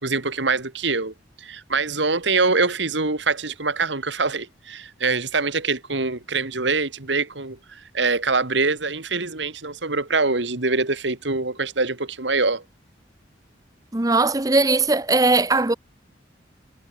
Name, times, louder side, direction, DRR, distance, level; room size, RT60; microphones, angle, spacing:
voice 1, 0.0-12.6, right 3 dB, 75° right, 2.4 m, -24 dB
voice 2, 13.9-15.7, right 3 dB, 20° right, 0.8 m, -19 dB
head